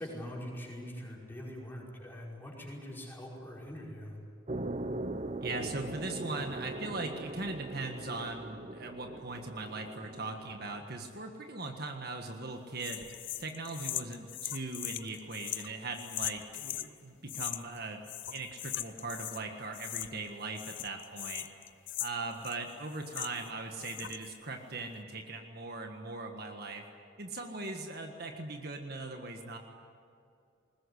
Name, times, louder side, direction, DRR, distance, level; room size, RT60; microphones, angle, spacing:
voice 1, 0.0-4.2, equal, 10° left, -3 dB, 5.2 m, -43 dB
sound 1, 4.5-10.8, right 2 dB, 35° right, 0.9 m, -40 dB
voice 2, 5.4-13.1 13.4-21.5 22.0-26.8 27.2-29.6, right 3 dB, 50° right, 4 dB, 1.6 m, -40 dB
sound 2, 12.8-16.9 17.3-17.8 18.0-19.4 19.7-20.3 20.5-23.5 23.8-24.3, left 13 dB, 60° left, 0.9 m, -40 dB
21.0 x 20.5 x 10.0 m, 2.4 s
head